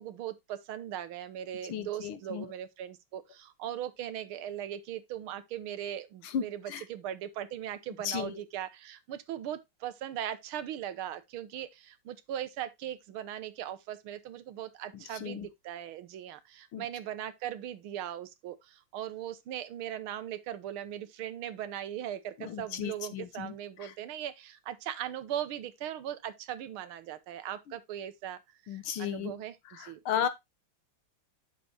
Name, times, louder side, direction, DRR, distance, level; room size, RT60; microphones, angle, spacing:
voice 1, 0.0-6.6 6.9-30.0, right 11 dB, 85° right, 1.7 m, -39 dB
voice 2, 1.7-2.5 6.2-6.9 8.0-8.4 14.9-15.5 16.7-16.9 22.4-23.5 23.8-23.9 27.7-27.8 28.7-29.3 29.7-30.3, left 9 dB, 80° left, 1.8 m, -35 dB
8.7 x 6.7 x 2.8 m
omnidirectional pair, 2.3 m